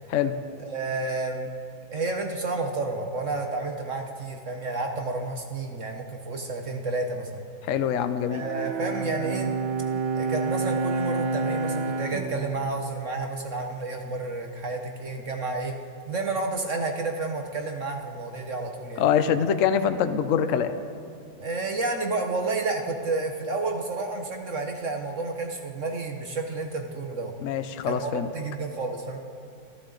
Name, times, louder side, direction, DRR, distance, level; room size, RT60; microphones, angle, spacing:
voice 1, 0.6-1.5 1.9-7.5 8.3-9.5 10.1-15.8 16.1-19.0 21.4-27.3 27.8-29.2, right 3 dB, 50° right, 3 dB, 1.1 m, -30 dB
voice 2, 7.6-8.4 19.0-20.7 27.4-28.3, left 8 dB, 65° left, 10 dB, 0.8 m, -24 dB
Bowed string instrument, 8.4-13.9, right 4 dB, 80° right, 1.7 m, -29 dB
26.0 x 12.0 x 3.9 m, 2.4 s
omnidirectional pair, 2.2 m